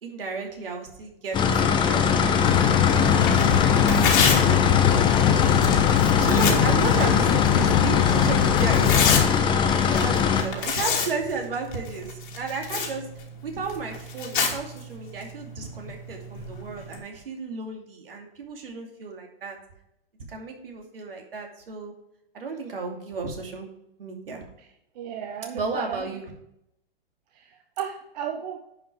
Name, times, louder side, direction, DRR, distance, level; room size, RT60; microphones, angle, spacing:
voice 1, 0.0-5.0 5.3-9.0 9.6-13.1 13.4-19.6 20.3-21.9 22.3-23.7 24.0-24.4 25.5-26.3, right 4 dB, 70° right, 2 dB, 2.7 m, -34 dB
sound 1, 1.3-10.4, left 6 dB, 15° left, 0.9 m, -21 dB
sound 2, 2.4-9.3, left 10 dB, 40° left, 0.7 m, -23 dB
Tearing, 3.2-17.0, left 5 dB, 60° left, 2.8 m, -30 dB
voice 2, 24.9-26.1 27.3-28.6, right 9 dB, 45° right, 4 dB, 1.0 m, -34 dB
10.0 x 5.7 x 4.9 m, 0.80 s
hypercardioid pair, 120°, 29 cm